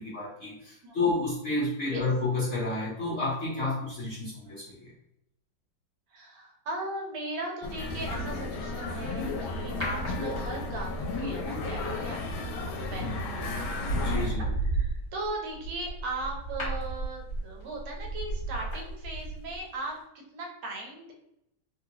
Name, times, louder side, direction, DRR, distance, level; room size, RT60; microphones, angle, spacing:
voice 1, 0.0-4.9 13.0-13.2 13.9-14.4, left 3 dB, 60° left, -8 dB, 0.7 m, -30 dB
voice 2, 6.1-21.1, right 2 dB, 85° right, 0 dB, 1.6 m, -38 dB
sound 1, 7.6-14.3, left 2 dB, 80° left, 1.3 m, -33 dB
sound 2, 9.8-10.8 12.7-13.0 13.5-19.7 19.9-20.0, right 2 dB, 40° left, 1.4 m, -33 dB
3.4 x 2.4 x 2.8 m, 0.80 s
omnidirectional pair, 2.1 m